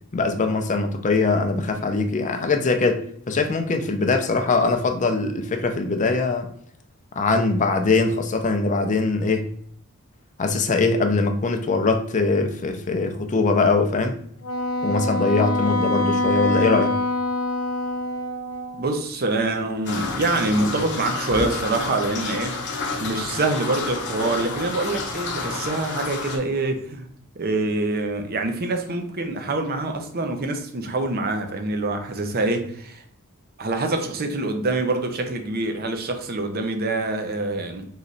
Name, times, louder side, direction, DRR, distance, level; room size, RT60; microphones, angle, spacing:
voice 1, 0.1-6.5 7.1-9.5 10.4-14.2 14.8-17.0, left 3 dB, 35° left, 0.5 m, -22 dB
Wind instrument woodwind instrument, 14.4-18.9, left 2 dB, 85° left, 0.6 m, -25 dB
voice 2, 18.8-22.6 23.0-27.1 27.4-33.0 33.6-37.8, right 2 dB, 45° right, 0.7 m, -25 dB
sound 1, 19.9-26.4, left 3 dB, 55° left, 0.9 m, -30 dB
4.0 x 3.1 x 3.9 m
head